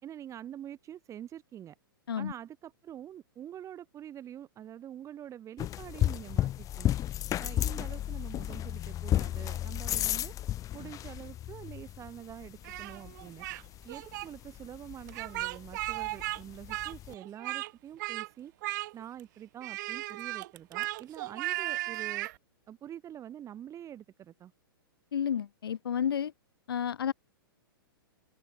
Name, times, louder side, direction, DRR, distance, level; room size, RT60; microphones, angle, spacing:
voice 1, 0.0-1.7 2.1-7.0 7.4-10.3 10.7-13.4 13.8-18.5 18.9-22.3 22.7-24.5, right 10 dB, 25° right, 3.5 m, -46 dB
sound 1, 5.6-17.1, left 12 dB, 25° left, 1.7 m, -34 dB
Speech, 12.6-13.6 13.9-14.3 15.1-16.4 16.7-17.7 18.0-18.3 18.6-19.2 19.6-22.4, right 19 dB, 50° right, 3.3 m, -36 dB
voice 2, 25.1-26.3 26.7-27.1, left 8 dB, 75° left, 1.8 m, -31 dB
hypercardioid pair, 115°, 12 cm